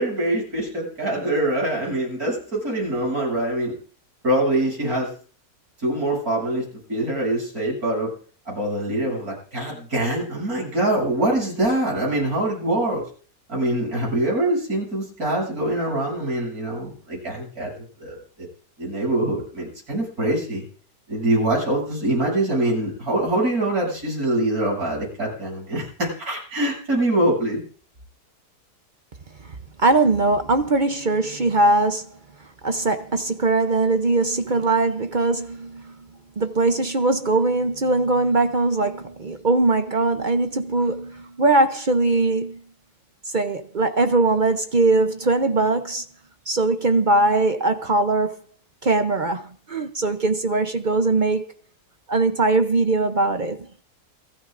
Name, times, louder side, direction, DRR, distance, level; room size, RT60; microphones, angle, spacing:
voice 1, 0.0-3.7 4.2-5.1 5.8-8.1 8.5-13.0 13.5-18.2 18.8-20.6 21.1-27.6, right 1 dB, 65° right, 8.5 m, -24 dB
voice 2, 29.4-32.2 32.6-35.9 36.4-42.6 43.3-46.1 46.5-48.4 48.8-51.5 52.1-53.7, right 2 dB, 40° right, 0.7 m, -21 dB
29.0 x 13.0 x 2.6 m
omnidirectional pair, 1.7 m